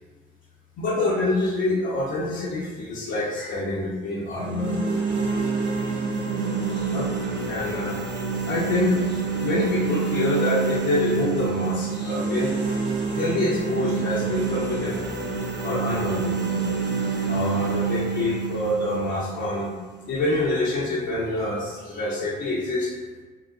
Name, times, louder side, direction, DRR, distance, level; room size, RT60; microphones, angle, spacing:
voice 1, 0.8-4.8 6.7-7.1 7.5-8.0 8.5-12.5 13.2-15.0 15.6-16.7 17.3-19.7 20.1-22.9, left 2 dB, 70° left, -9 dB, 1.0 m, -26 dB
sound 1, 4.3-20.3, right 5 dB, 65° right, 0.9 m, -27 dB
5.0 x 2.4 x 2.6 m, 1.4 s
cardioid pair, 90°, 20 cm